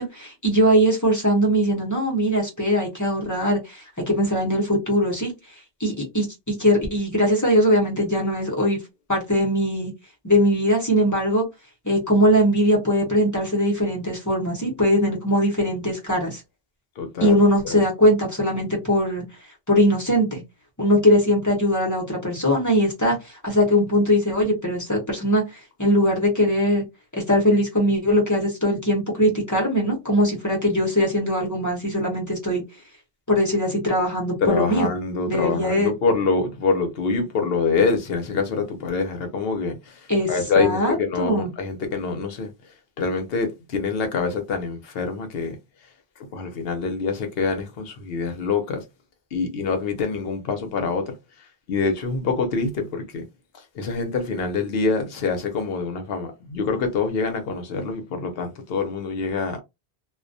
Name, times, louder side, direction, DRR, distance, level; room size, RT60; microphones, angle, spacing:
voice 1, 0.0-5.3 5.8-8.8 9.1-9.9 10.2-11.5 11.8-16.4 17.2-19.2 19.7-20.4 20.8-25.4 25.8-26.8 27.1-32.6 33.3-34.9 35.3-35.9 40.1-40.3 40.6-41.5, equal, 20° left, 0.7 m, -21 dB
voice 2, 17.0-17.4 17.6-17.8 34.4-42.5 43.0-45.6 46.3-48.8 49.3-51.1 51.7-53.2 53.7-59.6, left 4 dB, 70° left, 0.8 m, -25 dB
2.3 x 2.1 x 2.6 m
omnidirectional pair, 1.1 m